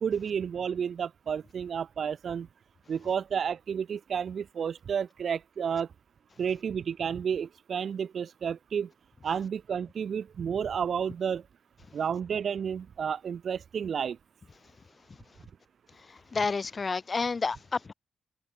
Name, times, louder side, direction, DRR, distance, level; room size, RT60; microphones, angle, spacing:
voice 1, 0.0-2.5 2.9-5.9 6.4-8.9 9.2-11.4 11.9-14.2, right 7 dB, 45° right, 1.0 m, -31 dB
voice 2, 16.1-17.9, left 4 dB, 25° left, 0.5 m, -30 dB
wide cardioid pair, 155°, 0 cm